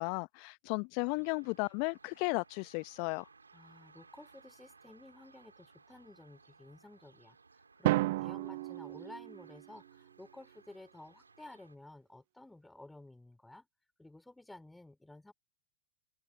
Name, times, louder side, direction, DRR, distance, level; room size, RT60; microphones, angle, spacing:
voice 1, 0.0-3.2, left 37 dB, 50° left, 0.9 m, -34 dB
sound 1, 1.2-11.8, right 4 dB, 80° right, 4.0 m, -62 dB
voice 2, 3.5-7.4 7.8-13.7 14.0-15.3, left 2 dB, 5° left, 4.7 m, -53 dB
Drum, 7.8-9.9, right 18 dB, 55° right, 0.9 m, -33 dB
figure-of-eight pair, 90°, 0 cm